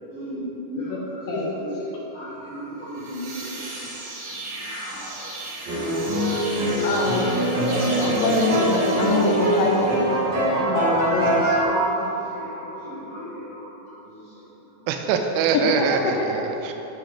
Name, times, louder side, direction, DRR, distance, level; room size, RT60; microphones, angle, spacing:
voice 1, 0.1-4.1 4.5-5.0 10.6-14.5 14.8-14.9, right 1 dB, 50° left, -9 dB, 2.1 m, -34 dB
sound 1, 2.8-10.2, right 2 dB, 65° right, 1.7 m, -35 dB
sound 2, 5.7-11.6, right 1 dB, 45° right, 1.6 m, -23 dB
voice 2, 6.8-11.4, left 2 dB, 75° left, -2 dB, 2.2 m, -24 dB
voice 3, 14.9-16.7, right 6 dB, 85° right, 5 dB, 2.4 m, -24 dB
6.2 x 5.8 x 4.9 m, 3.0 s
omnidirectional pair, 4.4 m